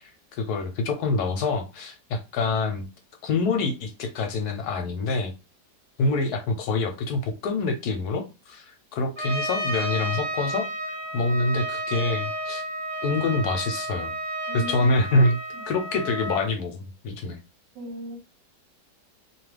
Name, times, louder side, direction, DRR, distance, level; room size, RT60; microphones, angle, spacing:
voice 1, 0.4-2.9 3.2-5.3 6.0-12.6 13.0-14.1 14.5-15.4 15.7-17.4, left 3 dB, 70° left, 1.0 m, -26 dB
Trumpet, 9.2-16.5, right 1 dB, 10° right, 1.0 m, -31 dB
voice 2, 14.5-15.7 17.7-18.2, right 1 dB, 90° right, 1.4 m, -39 dB
2.9 x 2.3 x 3.2 m
omnidirectional pair, 1.9 m